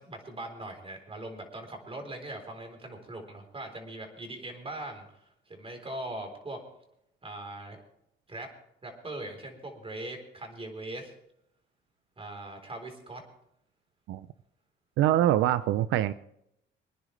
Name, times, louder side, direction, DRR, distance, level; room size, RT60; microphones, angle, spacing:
voice 1, 0.0-5.1 5.5-6.6 7.2-7.8 8.3-8.5 8.8-11.1 12.2-13.2, right 1 dB, 30° right, 4 dB, 3.8 m, -40 dB
voice 2, 15.0-16.1, right 12 dB, 90° right, 14 dB, 0.5 m, -24 dB
24.5 x 10.0 x 3.3 m, 0.77 s
cardioid pair, 90°, 20 cm